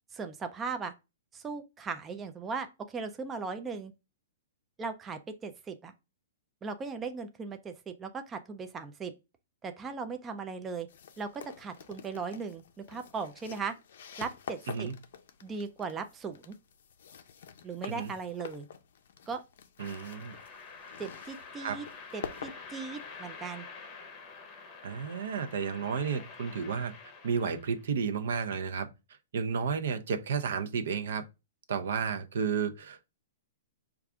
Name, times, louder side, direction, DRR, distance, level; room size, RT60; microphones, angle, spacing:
voice 1, 0.1-0.9 1.3-3.9 4.8-5.9 6.6-9.1 9.6-10.9 11.2-13.7 14.2-14.9 15.4-16.6 17.6-18.7 19.3-19.4 21.0-21.9 22.1-23.7, right 5 dB, 15° right, 0.3 m, -38 dB
sound 1, 10.9-23.4, left 7 dB, 65° left, 0.5 m, -47 dB
sound 2, 19.8-27.9, left 4 dB, 25° left, 0.7 m, -48 dB
voice 2, 19.8-20.4 21.6-21.8 24.8-26.9 27.2-28.9 29.3-31.2 31.7-33.0, right 6 dB, 75° right, 0.5 m, -32 dB
4.7 x 2.4 x 3.5 m
hypercardioid pair, 160°, 0 cm